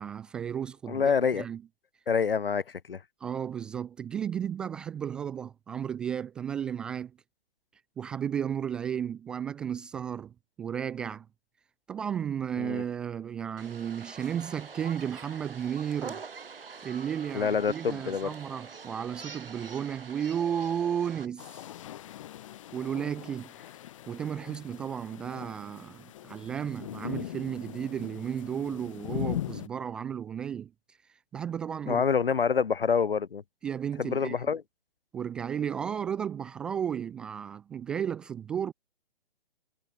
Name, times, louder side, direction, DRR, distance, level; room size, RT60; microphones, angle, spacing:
voice 1, 0.0-1.6 3.2-7.1 8.0-11.3 11.9-16.2 16.8-21.5 22.7-23.5 24.1-30.7 31.3-32.0 33.6-34.3 35.1-38.7, right 8 dB, 5° right, 0.4 m, -33 dB
voice 2, 0.9-1.5 2.1-3.0 12.6-12.8 17.3-18.3 24.5-24.6 31.9-33.4 34.0-34.6, left 6 dB, 65° left, 1.1 m, -27 dB
sound 1, 13.6-21.3, right 5 dB, 65° right, 2.0 m, -45 dB
sound 2, 21.4-29.7, left 12 dB, 30° left, 1.0 m, -40 dB
figure-of-eight pair, 130°, 30 cm